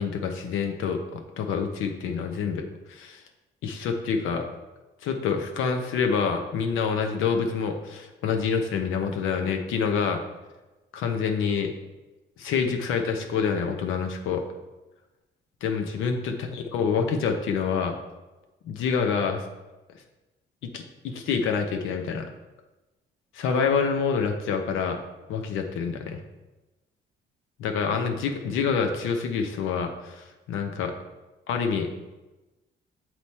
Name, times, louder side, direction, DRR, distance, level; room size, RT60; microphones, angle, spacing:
voice 1, 0.0-2.6 2.9-3.2 3.6-4.5 5.0-10.2 10.9-11.7 12.4-14.4 15.6-18.0 18.6-19.4 20.7-22.3 23.3-25.0 25.3-26.2 27.6-30.9 31.5-31.9, left 6 dB, 90° left, 4 dB, 0.8 m, -27 dB
8.1 x 3.0 x 4.2 m, 1.1 s
cardioid pair, 90°, 20 cm